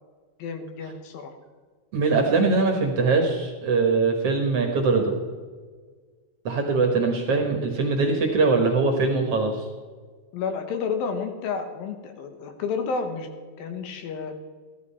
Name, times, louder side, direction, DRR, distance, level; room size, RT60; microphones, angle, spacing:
voice 1, 0.4-1.3 10.3-13.3 13.6-14.4, left 5 dB, 90° left, 6 dB, 3.0 m, -30 dB
voice 2, 1.9-5.1 6.5-9.7, right 4 dB, 55° right, 3 dB, 1.9 m, -22 dB
14.0 x 12.5 x 4.2 m, 1.5 s
omnidirectional pair, 4.1 m